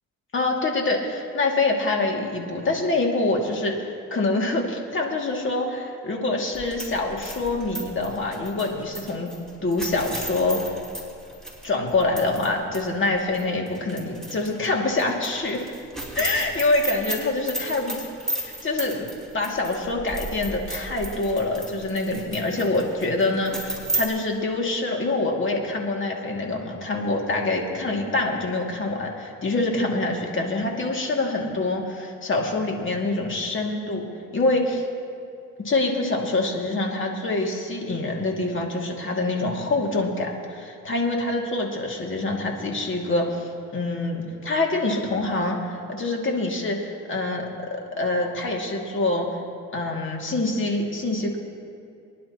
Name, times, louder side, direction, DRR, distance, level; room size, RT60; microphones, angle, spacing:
voice 1, 0.3-9.3 9.6-10.7 11.6-15.7 16.1-18.0 18.3-19.1 19.3-34.0 34.3-34.8 35.6-49.3 49.7-51.4, left 2 dB, 40° left, 0 dB, 2.3 m, -25 dB
sound 1, 6.5-12.5 12.7-12.8 13.3-14.7 15.0-24.1, right 1 dB, ahead, 3.5 m, -34 dB
24.0 x 11.0 x 2.9 m, 2.5 s
cardioid pair, 90°, 30 cm